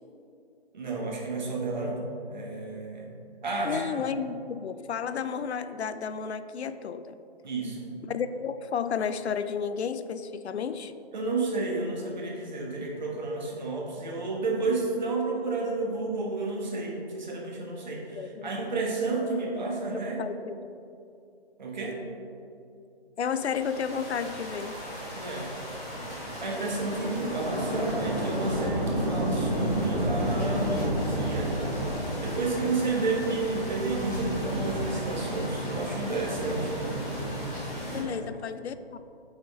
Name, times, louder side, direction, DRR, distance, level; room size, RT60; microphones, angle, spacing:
voice 1, 0.7-3.1 3.4-4.1 7.4-7.9 11.1-20.2 21.6-22.0 25.1-25.5 26.4-31.6 32.2-36.7 38.0-38.2, right 3 dB, 45° right, -2 dB, 1.3 m, -31 dB
voice 2, 3.6-7.2 8.1-10.9 18.1-18.5 19.1-19.4 19.9-20.8 23.2-24.8 37.9-39.0, left 7 dB, 80° left, 12 dB, 0.5 m, -32 dB
sound 1, 23.3-38.0, equal, 5° left, 0.9 m, -31 dB
7.8 x 4.3 x 3.9 m, 2.6 s
hypercardioid pair, 170°, 32 cm